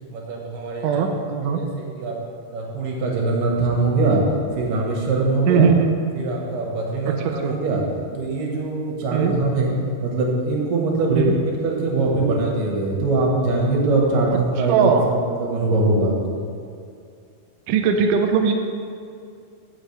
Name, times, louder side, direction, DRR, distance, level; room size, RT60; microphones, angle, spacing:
voice 1, 0.1-1.1 1.6-1.7 2.0-2.2 2.5-4.2 4.5-5.7 6.1-7.8 8.1-9.7 10.0-11.4 11.6-16.1, right 3 dB, 65° right, -2 dB, 2.8 m, -22 dB
voice 2, 0.8-1.6 5.5-5.9 7.2-7.6 9.1-9.3 11.2-11.3 14.7-15.1 17.7-18.5, right 6 dB, 90° right, 4 dB, 1.8 m, -19 dB
15.0 x 6.3 x 3.4 m, 2.3 s
omnidirectional pair, 4.6 m